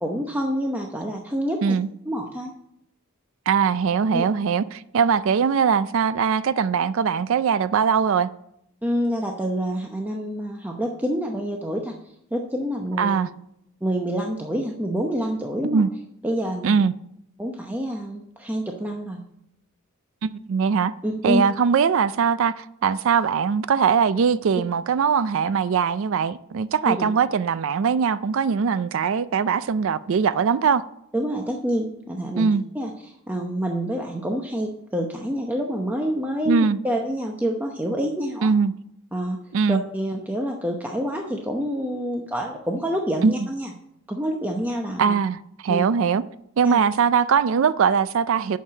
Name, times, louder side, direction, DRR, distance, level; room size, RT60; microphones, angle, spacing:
voice 1, 0.0-1.8 2.1-2.5 4.1-4.2 8.8-11.9 12.3-13.2 13.8-15.8 16.2-16.8 17.4-19.2 21.0-21.4 26.8-27.1 31.1-36.6 36.8-38.5 39.1-39.4 39.7-43.7 44.1-45.1 45.7-45.9 46.6-46.8, equal, 10° right, 0.8 m, -27 dB
voice 2, 3.5-8.3 13.0-13.3 15.6-15.9 16.6-16.9 20.2-20.9 21.2-30.8 32.4-32.6 36.5-36.8 38.4-38.7 39.5-39.8 43.2-43.3 45.0-46.2 46.6-48.6, right 6 dB, 65° right, 0.4 m, -21 dB
8.7 x 6.6 x 7.5 m
head